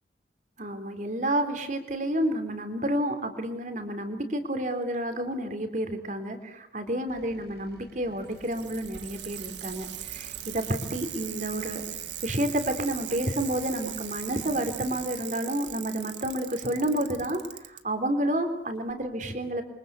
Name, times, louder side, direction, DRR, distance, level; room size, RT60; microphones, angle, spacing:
voice 1, 0.6-11.8 12.2-19.6, right 1 dB, 45° right, 8 dB, 3.6 m, -30 dB
sound 1, 7.1-15.2, right 1 dB, 70° right, 6.8 m, -52 dB
Bicycle, 8.2-17.8 18.9-19.0, right 12 dB, 85° right, 1.9 m, -39 dB
29.0 x 24.0 x 8.3 m, 0.80 s
head